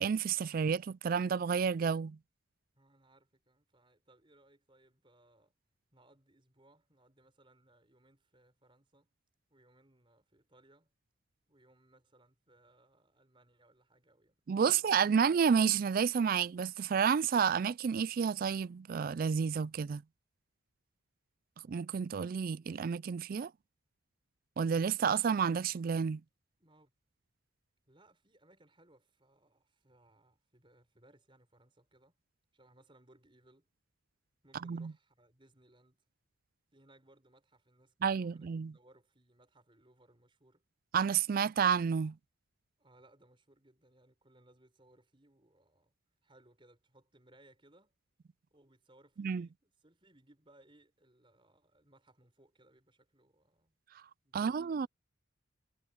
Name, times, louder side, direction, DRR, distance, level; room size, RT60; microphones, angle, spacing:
voice 1, 0.0-2.2 14.5-20.0 21.7-23.5 24.6-26.2 34.6-34.9 38.0-38.7 40.9-42.2 49.2-49.5 54.3-54.9, right 6 dB, 45° right, 0.3 m, -30 dB
voice 2, 2.7-5.5 5.9-9.1 9.5-10.9 11.5-14.4 14.7-15.3 26.6-26.9 27.8-32.1 32.5-33.7 34.4-36.0 36.7-40.6 42.8-45.9 46.2-47.9 48.5-53.7 54.2-54.9, right 1 dB, 25° right, 5.1 m, -65 dB
head